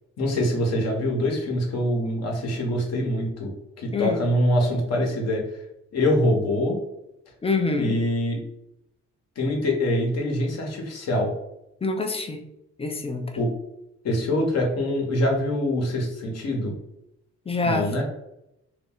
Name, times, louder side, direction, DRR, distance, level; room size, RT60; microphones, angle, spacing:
voice 1, 0.2-3.5 3.8-5.4 5.9-6.8 7.8-8.4 9.4-11.3 13.4-13.5 14.0-16.7 17.6-18.0, left 1 dB, 55° left, 1 dB, 0.9 m, -24 dB
voice 2, 3.9-4.3 7.4-8.0 11.8-12.4 12.8-13.4 17.5-17.9, left 3 dB, 20° left, 5 dB, 0.3 m, -26 dB
2.5 x 2.0 x 3.7 m, 0.84 s
cardioid pair, 90°, 30 cm